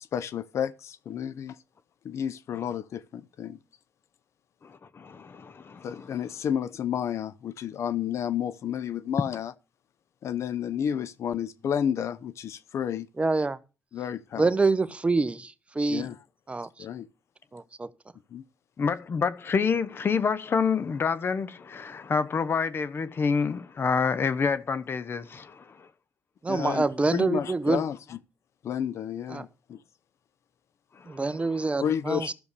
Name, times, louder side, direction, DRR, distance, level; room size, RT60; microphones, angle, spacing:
voice 1, 0.1-1.6 2.0-3.6 5.8-9.5 10.2-13.1 13.9-14.5 15.9-16.2 16.8-17.1 18.3-18.4 26.5-26.9 27.1-28.2 28.6-29.8 31.8-32.3, left 9 dB, 70° left, 0.7 m, -31 dB
voice 2, 4.6-6.1 18.8-25.9 31.1-31.2, left 5 dB, 50° left, 1.1 m, -28 dB
voice 3, 13.2-13.6 14.4-16.1 16.5-16.7 17.5-17.9 26.4-27.8 29.3-29.4 31.1-32.3, right 3 dB, 25° right, 1.0 m, -26 dB
12.5 x 6.9 x 6.7 m
cardioid pair, 80°, 5 cm